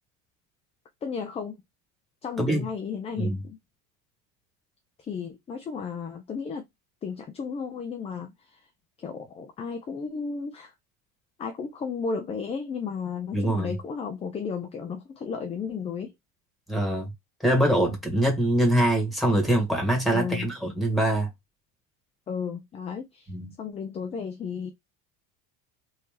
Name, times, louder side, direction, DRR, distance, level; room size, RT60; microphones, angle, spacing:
voice 1, 1.0-1.6 2.2-3.6 5.1-6.6 7.0-8.6 9.0-10.7 11.4-16.1 20.1-20.5 22.3-23.3 23.6-24.7, left 5 dB, 15° left, 0.4 m, -34 dB
voice 2, 13.3-13.7 16.7-17.1 17.4-21.3 23.3-23.5, right 1 dB, ahead, 1.6 m, -23 dB
3.2 x 2.7 x 3.2 m
supercardioid pair, 125°, 38 cm